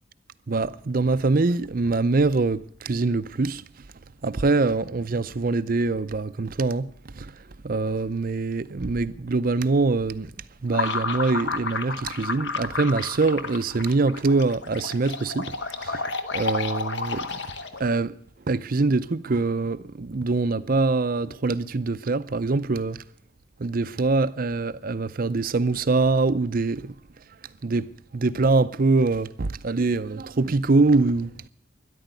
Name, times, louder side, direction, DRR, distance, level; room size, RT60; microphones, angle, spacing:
voice 1, 0.5-3.6 4.2-7.3 7.6-10.3 10.6-15.6 15.8-17.3 17.8-18.2 18.5-23.0 23.6-26.9 27.6-31.3, right 3 dB, 45° right, 0.6 m, -24 dB
sound 1, 10.7-17.9, left 4 dB, 60° left, 1.3 m, -31 dB
13.0 x 10.5 x 9.5 m
head